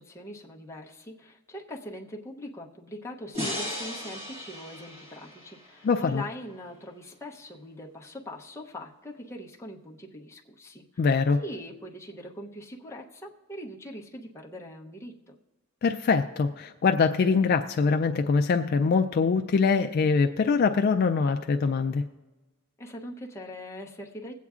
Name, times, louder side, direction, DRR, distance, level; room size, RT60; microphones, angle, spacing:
voice 1, 0.0-11.0 11.4-15.3 22.8-24.3, equal, 15° left, -2 dB, 0.8 m, -42 dB
sound 1, 3.3-6.6, left 1 dB, 30° right, 1.7 m, -37 dB
voice 2, 5.8-6.2 11.0-11.4 15.8-22.0, left 5 dB, 45° left, 6 dB, 0.3 m, -23 dB
22.0 x 8.3 x 2.4 m, 1.1 s
head